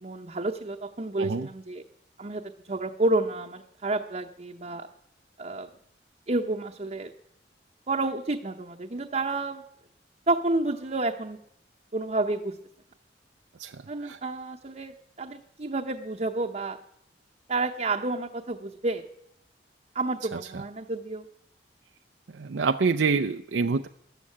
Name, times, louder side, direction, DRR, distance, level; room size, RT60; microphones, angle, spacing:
voice 1, 0.0-1.8 2.2-2.4 2.7-4.9 5.4-5.7 6.3-7.1 7.9-9.6 10.3-11.4 11.9-12.6 13.9-16.8 17.5-19.0 19.9-21.3, right 2 dB, 40° right, 1 dB, 0.8 m, -30 dB
voice 2, 13.6-14.2 20.3-20.6 22.3-23.9, right 4 dB, 80° right, 6 dB, 0.5 m, -27 dB
14.0 x 11.5 x 8.6 m, 0.76 s
head